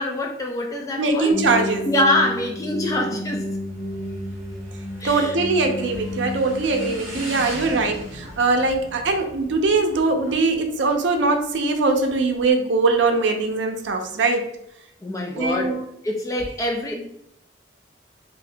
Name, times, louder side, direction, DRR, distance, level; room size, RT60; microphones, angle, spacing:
voice 1, 0.0-1.4 1.9-3.5 5.0-5.4 15.0-17.0, left 1 dB, 15° left, 1 dB, 0.4 m, -25 dB
voice 2, 1.0-1.9 5.0-14.5 15.4-15.8, right 3 dB, 75° right, 5 dB, 0.5 m, -21 dB
sound 1, 1.3-9.2, equal, 75° left, 0.8 m, -32 dB
Motorcycle / Engine, 3.3-12.5, equal, 15° right, 1.4 m, -40 dB
2.8 x 2.5 x 3.3 m, 0.73 s
head